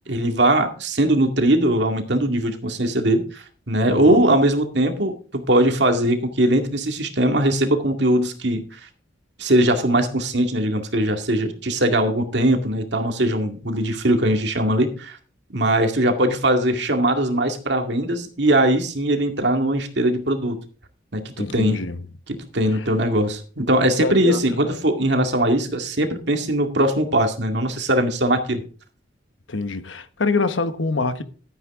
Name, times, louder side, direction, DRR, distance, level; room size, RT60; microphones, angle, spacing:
voice 1, 0.1-8.6 9.4-15.2 15.5-20.6 21.1-21.8 22.3-28.6, right 1 dB, 65° right, 2.1 m, -20 dB
voice 2, 3.9-4.4 21.4-22.0 22.7-22.8 24.0-24.4 24.7-24.8 29.5-31.2, left 3 dB, 90° left, 1.1 m, -25 dB
12.5 x 9.4 x 3.7 m
head